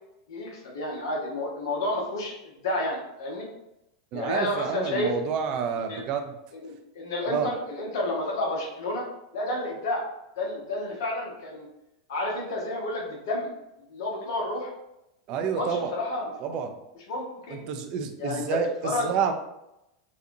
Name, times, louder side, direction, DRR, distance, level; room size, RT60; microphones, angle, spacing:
voice 1, 0.3-3.4 4.1-5.1 5.7-6.0 6.5-9.0 9.3-10.0 10.4-11.7 12.1-13.5 13.9-14.7 15.5-16.6 17.1-17.6 18.2-18.6 18.8-19.1, left 2 dB, 65° left, -2 dB, 1.1 m, -30 dB
voice 2, 4.1-6.3 7.3-7.5 15.3-15.9 16.4-16.7 17.7-19.3, right 7 dB, 50° right, 6 dB, 0.5 m, -29 dB
4.0 x 2.4 x 2.6 m, 0.87 s
hypercardioid pair, 95°, 2 cm